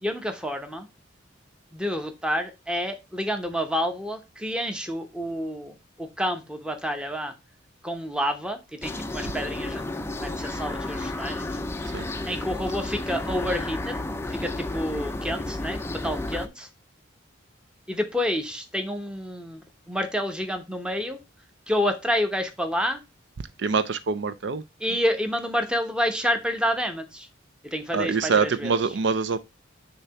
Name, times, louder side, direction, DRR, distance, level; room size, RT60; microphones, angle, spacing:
voice 1, 0.0-0.9 1.7-7.3 7.8-11.5 11.8-14.0 14.3-16.7 17.9-21.2 21.7-23.0 24.8-27.3 27.6-28.8, equal, 5° right, 0.8 m, -29 dB
sound 1, 8.8-16.5, left 2 dB, 10° left, 0.4 m, -32 dB
voice 2, 23.6-24.6 27.9-29.4, right 5 dB, 60° right, 0.4 m, -24 dB
6.6 x 2.8 x 5.6 m
head